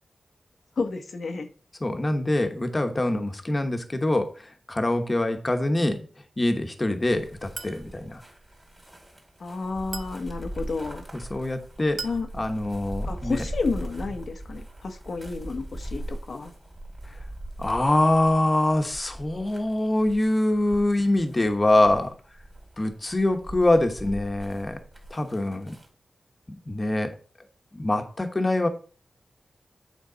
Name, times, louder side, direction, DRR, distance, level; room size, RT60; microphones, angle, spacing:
voice 1, 0.8-1.5 9.4-11.0 12.0-12.3 13.0-16.5, left 4 dB, 65° left, 6 dB, 0.8 m, -31 dB
voice 2, 1.8-6.0 6.4-8.2 11.3-12.0 12.3-13.4 17.6-22.1 22.8-24.8 25.1-25.7 26.7-27.2 27.7-28.7, left 1 dB, 30° left, 7 dB, 1.0 m, -24 dB
sound 1, 7.1-25.9, right 1 dB, 15° right, 2.1 m, -40 dB
Chink clink, 7.6-7.9 9.9-10.3 12.0-12.3, right 4 dB, 50° right, 0.7 m, -37 dB
8.3 x 4.4 x 3.9 m, 0.39 s
wide cardioid pair, 85°, 0 cm